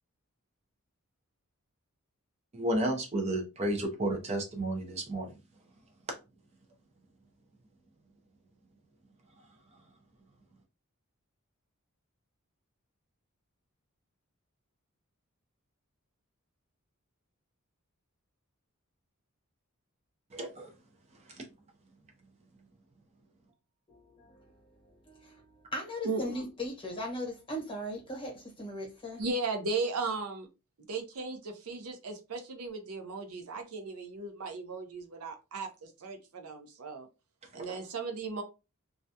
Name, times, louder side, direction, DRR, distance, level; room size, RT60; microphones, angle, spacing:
voice 1, 2.5-5.3 20.3-20.7 37.7-37.8, right 1 dB, 30° right, 0.5 m, -32 dB
voice 2, 23.9-24.5 25.1-29.2, left 1 dB, 25° left, 1.0 m, -38 dB
voice 3, 29.2-30.5 30.9-37.1 37.5-38.4, right 3 dB, 85° right, 0.6 m, -36 dB
2.4 x 2.2 x 2.6 m
head